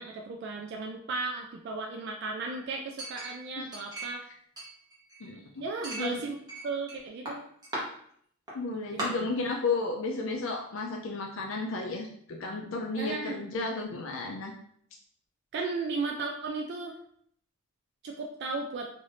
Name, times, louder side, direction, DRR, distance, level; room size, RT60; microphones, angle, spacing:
voice 1, 0.0-4.2 5.6-6.4 6.6-7.4 8.9-9.3 12.9-13.4 15.5-16.9 18.0-18.9, right 3 dB, 55° right, 1 dB, 0.3 m, -35 dB
Chink clink, 3.0-4.3 4.6-5.3 5.8-7.0 7.3-7.8 8.5-8.6 9.0-9.1, right 1 dB, 20° right, 0.9 m, -37 dB
voice 2, 5.2-5.6 6.0-6.2 8.5-14.5, left 3 dB, 70° left, 1 dB, 0.4 m, -33 dB
2.6 x 2.5 x 3.3 m, 0.65 s
head